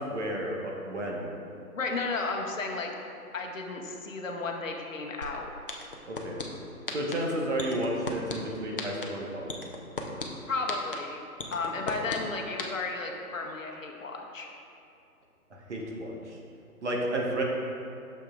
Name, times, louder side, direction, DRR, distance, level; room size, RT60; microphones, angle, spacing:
voice 1, 0.1-1.3 6.1-6.4 6.9-9.5 15.5-16.4 16.8-17.4, right 1 dB, 50° right, -2 dB, 1.3 m, -32 dB
voice 2, 1.7-2.9 3.3-5.5 10.5-11.2 11.5-14.5, left 3 dB, 60° left, 1 dB, 1.0 m, -33 dB
sound 1, 5.2-5.3 5.7-6.4 6.9-7.1 7.6-8.3 8.8-9.0 9.5-10.2 10.7-10.9 11.4-12.2 12.6-12.7, left 4 dB, 40° left, 0.6 m, -33 dB
9.8 x 6.6 x 2.5 m, 2.6 s
figure-of-eight pair, 155°, 45 cm